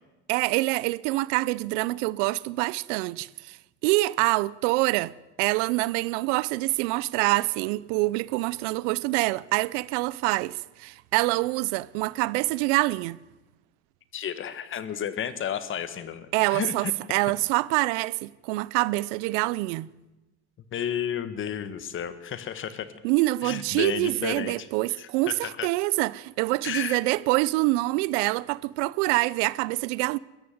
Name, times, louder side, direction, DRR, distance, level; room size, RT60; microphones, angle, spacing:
voice 1, 0.3-3.6 3.8-5.1 5.4-13.2 16.3-19.9 23.0-30.2, right 21 dB, 75° right, 0.7 m, -26 dB
voice 2, 14.1-16.9 20.7-22.9 23.4-24.7 25.0-25.7 26.6-27.0, left 9 dB, 35° left, 1.6 m, -32 dB
22.0 x 14.0 x 9.4 m
supercardioid pair, 135°, 36 cm